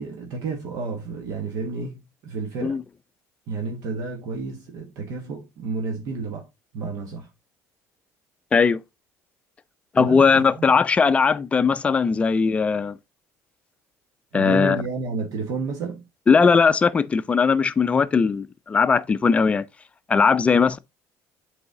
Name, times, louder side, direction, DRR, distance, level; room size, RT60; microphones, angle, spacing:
voice 1, 0.0-2.8 3.5-6.5 6.7-7.3 10.0-10.4 14.3-16.1, right 4 dB, 65° right, 1.2 m, -31 dB
voice 2, 9.9-13.0 14.3-14.8 16.3-19.7 20.1-20.8, left 5 dB, 20° left, 0.4 m, -19 dB
7.9 x 4.0 x 3.7 m
cardioid pair, 135°, 6 cm